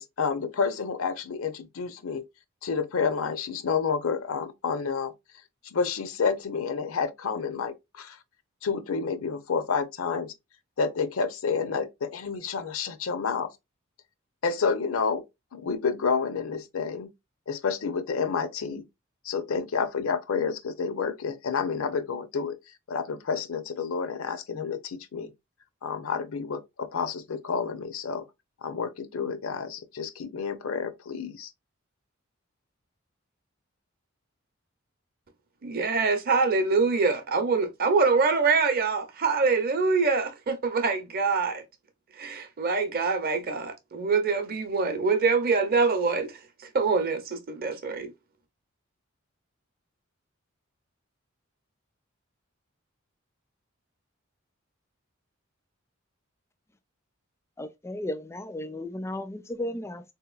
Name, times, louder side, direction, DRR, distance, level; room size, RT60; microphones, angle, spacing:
voice 1, 0.0-2.2 2.6-5.1 5.6-8.2 8.6-10.3 10.8-13.5 14.4-15.2 15.5-17.1 17.5-18.8 19.2-22.6 22.9-25.3 25.8-28.2 28.6-31.5, left 5 dB, 80° left, 0.6 m, -29 dB
voice 2, 35.6-41.6 42.2-46.4 46.7-48.1, right 4 dB, 45° right, 0.6 m, -25 dB
voice 3, 57.6-60.0, left 1 dB, 15° left, 0.4 m, -34 dB
3.7 x 2.9 x 2.3 m
head